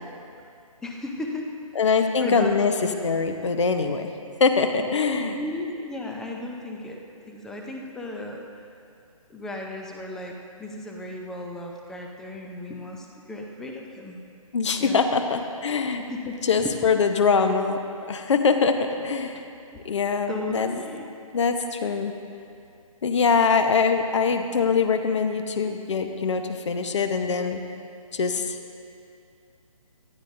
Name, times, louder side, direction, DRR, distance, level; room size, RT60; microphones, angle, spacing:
voice 1, 0.8-1.5 1.8-2.5 5.3-8.5 9.3-14.2 14.8-15.0 16.0-16.8 19.7-19.8 20.3-21.1, left 2 dB, 5° left, 1 dB, 0.5 m, -35 dB
voice 2, 1.7-4.1 4.4-5.4 14.5-16.0 16.4-17.8 18.1-19.4 19.8-20.8 21.3-22.1 23.0-27.6 28.1-28.6, left 5 dB, 55° left, 7 dB, 1.0 m, -23 dB
18.0 x 13.0 x 2.7 m, 2.5 s
figure-of-eight pair, 150°, 18 cm